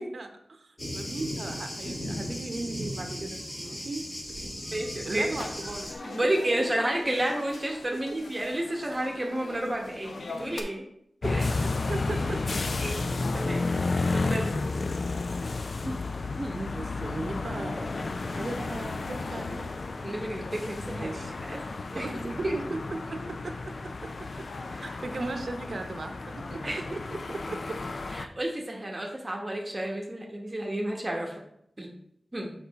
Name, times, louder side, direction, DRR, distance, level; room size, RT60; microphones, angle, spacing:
voice 1, 0.0-4.1 4.4-4.6 5.0-6.2 11.9-12.4 16.6-19.7 21.0-21.3 21.9-24.5 24.8-27.8, right 2 dB, 60° right, 6 dB, 0.8 m, -37 dB
Thunder, 0.8-5.9, equal, 30° left, 2.3 m, -36 dB
voice 2, 4.7-5.4 6.0-10.8 11.2-12.2 12.8-13.0 13.3-13.6 14.1-14.5 15.8-16.0 16.4-16.6 20.0-21.6 21.9-22.1 22.4-22.5 24.7-24.9 26.6-26.8 28.1-31.4 31.8-31.9 32.3-32.5, right 1 dB, 25° right, 0 dB, 1.1 m, -31 dB
sound 1, 5.3-10.6, left 3 dB, 80° left, 0.9 m, -41 dB
sound 2, 11.2-28.2, left 3 dB, 60° left, 0.4 m, -32 dB
7.0 x 5.4 x 4.1 m, 0.74 s
wide cardioid pair, 95°, 0 cm